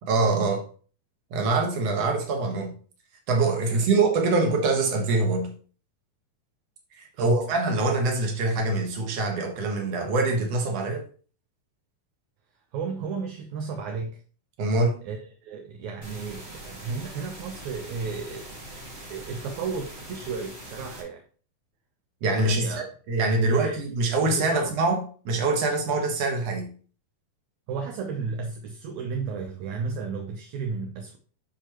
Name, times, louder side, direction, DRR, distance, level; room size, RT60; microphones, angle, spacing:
voice 1, 0.1-0.6 1.3-2.7 3.3-5.5 7.2-11.0 14.6-15.0 22.2-26.7, right 3 dB, 55° right, 2 dB, 2.2 m, -24 dB
voice 2, 12.7-14.2 15.0-18.6 19.1-21.2 22.4-22.8 23.2-23.8 24.2-24.7 27.7-31.2, right 5 dB, 70° right, 2 dB, 1.9 m, -33 dB
sound 1, 16.0-21.0, right 1 dB, 30° right, 1.1 m, -42 dB
12.0 x 4.5 x 3.0 m, 0.41 s
omnidirectional pair, 4.1 m